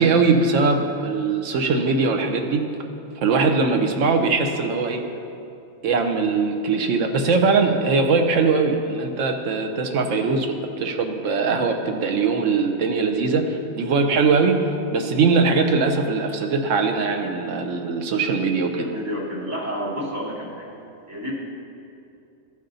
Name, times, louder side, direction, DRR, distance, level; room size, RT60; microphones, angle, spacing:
voice 1, 0.0-2.6 3.2-5.0 5.8-18.9, right 4 dB, 70° right, 5 dB, 1.1 m, -21 dB
voice 2, 18.8-20.7 21.1-21.3, equal, 10° right, -7 dB, 2.2 m, -30 dB
14.0 x 5.5 x 3.9 m, 2.6 s
omnidirectional pair, 1.4 m